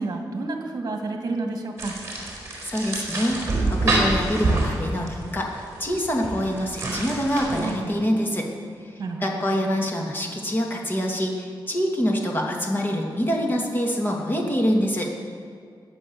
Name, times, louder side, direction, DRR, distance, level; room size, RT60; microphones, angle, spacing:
voice 1, 0.0-2.0 9.0-9.4, right 3 dB, 50° right, 3 dB, 2.4 m, -30 dB
sound 1, 1.8-7.7, right 2 dB, 30° right, 4.3 m, -27 dB
voice 2, 2.6-3.4 3.7-8.5 8.8-15.1, equal, 25° left, 0 dB, 2.5 m, -25 dB
20.0 x 8.6 x 7.1 m, 2.2 s
wide cardioid pair, 140°, 8 cm